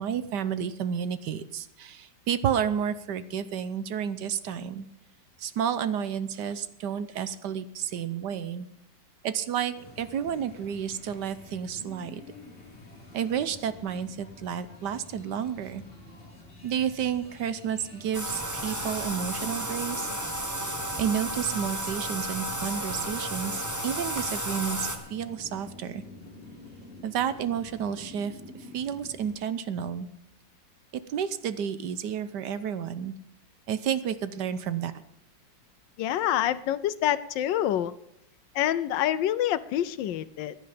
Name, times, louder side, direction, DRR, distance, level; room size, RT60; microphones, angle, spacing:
voice 1, 0.0-4.9 5.4-8.7 9.2-12.2 13.1-15.8 16.6-20.1 21.0-26.0 27.0-30.1 31.1-33.1 33.7-34.9, right 8 dB, 70° right, 13 dB, 1.3 m, -31 dB
sound 1, 9.7-29.3, left 2 dB, 30° left, 2.7 m, -48 dB
Bathtub (filling or washing), 18.1-25.0, right 1 dB, 10° right, 1.2 m, -32 dB
voice 2, 36.0-37.9 38.5-40.5, left 11 dB, 80° left, 15 dB, 1.4 m, -27 dB
15.5 x 10.5 x 5.1 m, 0.79 s
omnidirectional pair, 2.0 m